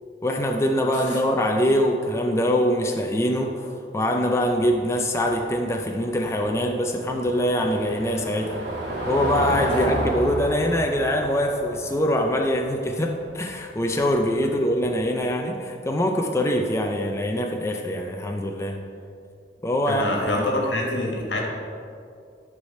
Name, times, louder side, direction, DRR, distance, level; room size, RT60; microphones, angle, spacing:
voice 1, 0.2-8.6 9.1-18.8 19.6-20.1 20.3-20.6, equal, 15° left, 2 dB, 0.4 m, -23 dB
Car passing by / Engine, 4.4-15.0, right 1 dB, 90° right, 2.0 m, -32 dB
voice 2, 19.9-21.4, left 1 dB, 90° left, 0 dB, 1.6 m, -26 dB
11.0 x 4.9 x 4.2 m, 2.4 s
head